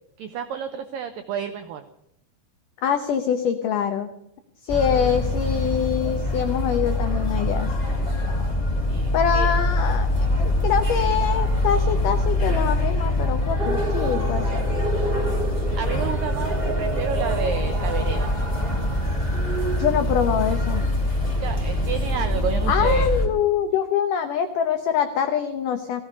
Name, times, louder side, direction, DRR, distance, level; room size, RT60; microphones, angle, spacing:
voice 1, 0.2-1.8 8.9-9.5 15.7-18.3 21.4-23.1, right 7 dB, 85° right, 8 dB, 1.9 m, -30 dB
voice 2, 2.8-4.1 4.6-7.7 9.1-14.7 19.8-20.8 22.7-26.0, left 8 dB, 85° left, 7 dB, 1.8 m, -24 dB
sound 1, 4.7-23.3, left 1 dB, 10° left, 2.4 m, -24 dB
sound 2, 13.6-19.9, right 3 dB, 20° right, 1.4 m, -31 dB
17.5 x 15.5 x 5.3 m, 0.77 s
omnidirectional pair, 5.1 m